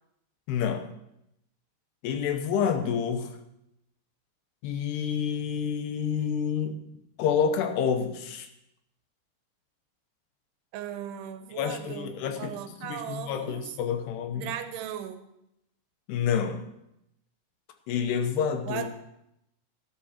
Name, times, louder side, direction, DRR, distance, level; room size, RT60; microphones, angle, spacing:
voice 1, 0.5-0.8 2.0-3.3 4.6-6.8 7.2-8.5 11.6-12.5 12.8-14.5 16.1-16.6 17.9-18.8, left 7 dB, 85° left, 7 dB, 3.1 m, -28 dB
voice 2, 10.7-13.8 14.3-15.2 18.7-18.9, right 10 dB, 85° right, 9 dB, 2.9 m, -37 dB
11.5 x 11.5 x 4.4 m, 0.82 s
omnidirectional pair, 4.6 m